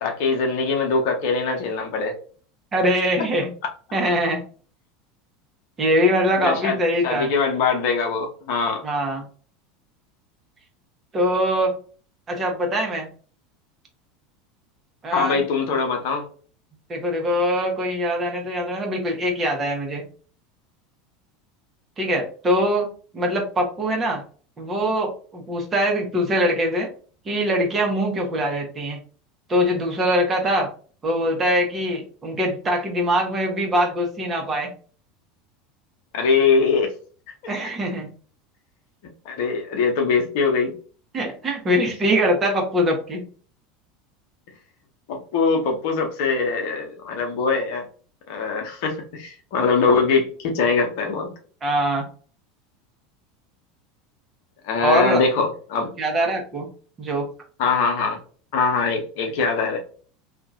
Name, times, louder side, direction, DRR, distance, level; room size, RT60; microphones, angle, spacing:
voice 1, 0.0-2.1 6.4-6.8 7.0-8.8 15.1-16.3 36.1-36.9 39.2-40.7 45.1-47.9 48.3-51.3 54.6-55.9 57.6-58.2 58.5-59.8, left 4 dB, 60° left, 2 dB, 0.9 m, -22 dB
voice 2, 2.7-3.5 3.9-4.4 5.8-7.3 8.8-9.2 11.1-11.7 12.3-13.1 15.0-15.4 16.9-20.0 22.0-22.9 23.1-24.2 24.6-26.9 27.2-29.0 29.5-30.7 31.0-34.7 37.5-38.1 41.1-43.2 51.6-52.0 54.8-55.2 56.0-56.7 57.0-57.2, equal, 30° right, 1 dB, 1.1 m, -22 dB
2.8 x 2.5 x 2.6 m, 0.41 s
hypercardioid pair, 80°, 0 cm